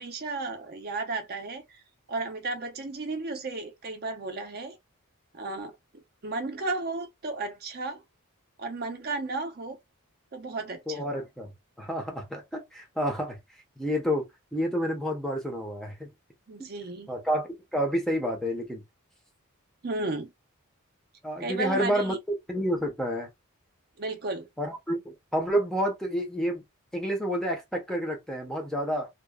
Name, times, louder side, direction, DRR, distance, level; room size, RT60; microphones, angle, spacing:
voice 1, 0.0-1.8 2.1-4.8 5.3-8.0 8.6-9.8 10.3-11.1 16.5-17.1 19.8-20.3 21.4-22.2 24.0-24.5, right 3 dB, 45° right, 0.6 m, -34 dB
voice 2, 10.9-11.5 11.8-13.4 13.8-14.3 14.5-16.1 17.1-18.8 21.2-22.1 22.5-23.3 24.6-26.6 26.9-29.1, equal, ahead, 0.6 m, -29 dB
2.8 x 2.0 x 2.2 m
head